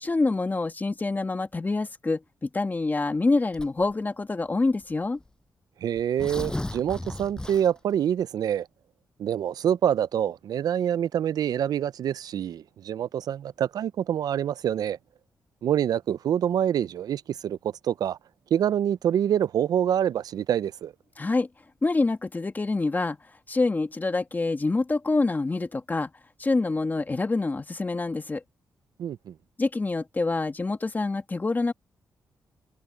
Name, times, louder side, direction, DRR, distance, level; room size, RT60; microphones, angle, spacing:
voice 1, 0.0-5.2 21.2-21.5 21.8-23.2 23.5-26.1 26.4-28.4 29.6-31.7, left 3 dB, 25° left, 1.8 m, -26 dB
Tearing, 3.5-3.9 4.8-4.9 5.2-5.3 6.0-7.9, left 1 dB, 10° left, 6.0 m, -35 dB
voice 2, 5.8-8.7 9.2-15.0 15.6-17.6 17.9-18.2 18.5-20.9 29.0-29.3, right 9 dB, 75° right, 0.5 m, -26 dB
cardioid pair, 85°, 7 cm